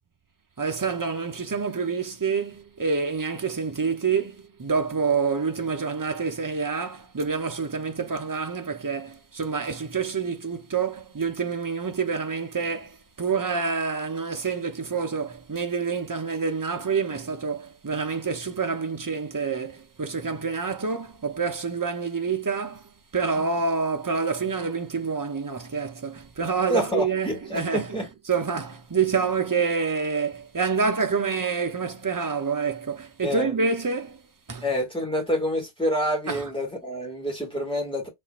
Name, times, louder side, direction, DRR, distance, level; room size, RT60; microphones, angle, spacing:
voice 1, 0.6-28.0 28.3-34.2 34.5-34.6 36.3-36.4, right 5 dB, 35° right, 0.3 m, -27 dB
voice 2, 26.7-28.1 33.2-33.5 34.6-38.1, equal, 5° left, 1.9 m, -27 dB
4.3 x 3.2 x 2.4 m
omnidirectional pair, 1.1 m